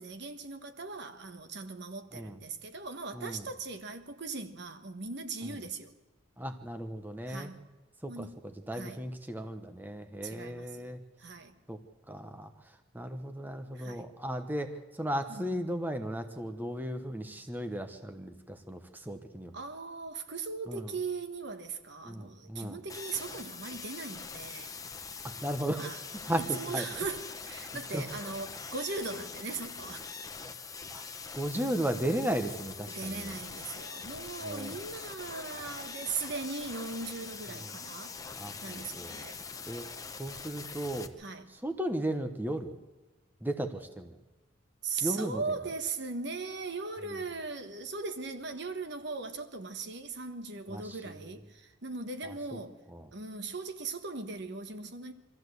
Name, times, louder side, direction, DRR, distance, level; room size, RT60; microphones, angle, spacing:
voice 1, 0.0-5.9 7.3-7.6 8.1-8.3 8.7-9.0 10.2-11.6 13.7-14.1 15.3-15.6 19.5-25.2 25.7-26.0 26.5-30.1 32.8-38.2 38.6-39.4 41.2-41.6 44.8-52.8 53.1-55.1, right 4 dB, 55° right, 1.4 m, -39 dB
voice 2, 3.1-3.4 5.4-5.6 6.4-7.5 8.0-11.0 11.7-11.8 12.1-19.5 20.7-20.9 22.0-22.8 25.2-25.9 26.2-26.9 27.9-28.1 30.9-31.0 31.3-33.4 34.4-34.8 37.5-37.7 38.4-39.1 39.7-39.9 40.2-41.1 41.5-42.8 43.4-44.2 45.0-45.4 47.1-47.2 50.7-51.3 52.2-52.6 52.9-53.1, right 1 dB, 10° right, 1.0 m, -36 dB
sound 1, 22.9-41.1, left 5 dB, 15° left, 0.9 m, -43 dB
24.0 x 14.0 x 8.1 m
head